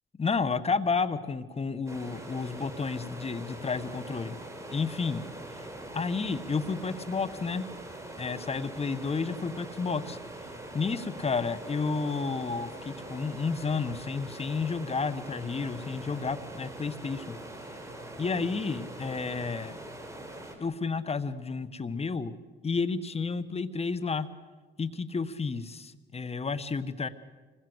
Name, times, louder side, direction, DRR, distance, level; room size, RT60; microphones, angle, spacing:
voice 1, 0.2-4.4 4.7-5.3 5.5-5.7 5.9-7.7 8.2-10.2 10.7-17.4 18.2-19.8 20.6-22.3 22.6-24.3 24.8-27.1, left 4 dB, 30° left, 13 dB, 1.5 m, -31 dB
sound 1, 1.9-20.6, right 1 dB, 15° right, 5.1 m, -43 dB
26.0 x 20.5 x 8.1 m, 1.3 s
cardioid pair, 90°, 20 cm